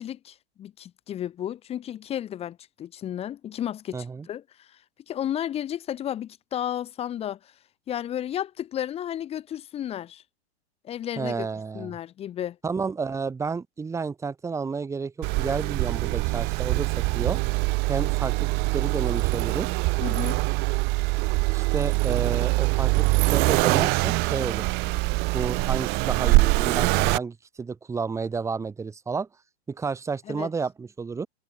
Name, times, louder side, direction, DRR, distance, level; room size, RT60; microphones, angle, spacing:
voice 1, 0.0-4.8 5.1-7.5 7.9-10.2 10.8-11.5 11.7-12.6 20.0-20.4 30.3-30.5, left 10 dB, 15° left, 3.2 m, -33 dB
voice 2, 3.9-4.3 11.2-11.9 12.6-17.4 17.9-18.5 18.7-19.8 21.5-24.7 25.3-29.3 29.7-31.3, right 5 dB, 10° right, 4.7 m, -31 dB
Accelerating revving vroom, 15.2-27.2, right 26 dB, 30° right, 3.0 m, -24 dB
supercardioid pair, 165°, 34 cm